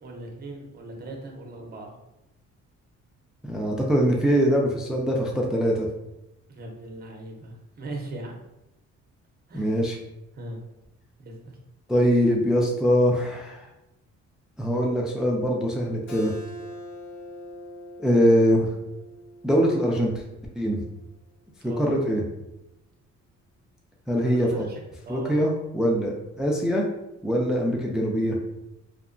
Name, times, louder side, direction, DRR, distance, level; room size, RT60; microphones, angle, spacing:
voice 1, 0.0-1.9 6.5-8.4 9.5-9.8 10.3-10.6 11.2-11.6 21.6-21.9 24.2-24.8 25.1-25.4, right 2 dB, 30° right, 1 dB, 0.7 m, -39 dB
voice 2, 3.4-5.9 9.5-10.0 11.9-13.7 14.6-16.3 18.0-18.7 19.4-20.1 20.6-20.8 21.8-22.2 24.1-24.7 25.1-26.8 27.2-28.4, equal, ahead, 0 dB, 0.3 m, -23 dB
Keyboard (musical), 16.1-21.3, equal, 60° left, 0.7 m, -43 dB
2.8 x 2.1 x 2.5 m, 0.89 s
cardioid pair, 90°, 30 cm